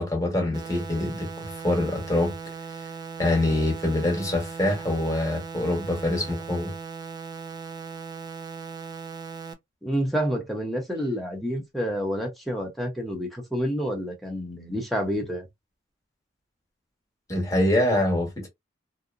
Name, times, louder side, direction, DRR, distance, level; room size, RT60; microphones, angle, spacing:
voice 1, 0.0-2.4 2.7-2.9 3.2-6.7 17.3-18.5, left 1 dB, 15° left, 1.1 m, -25 dB
sound 1, 0.5-9.5, right 5 dB, 20° right, 0.3 m, -38 dB
voice 2, 9.8-15.5, equal, ahead, 0.8 m, -29 dB
2.8 x 2.0 x 2.4 m
head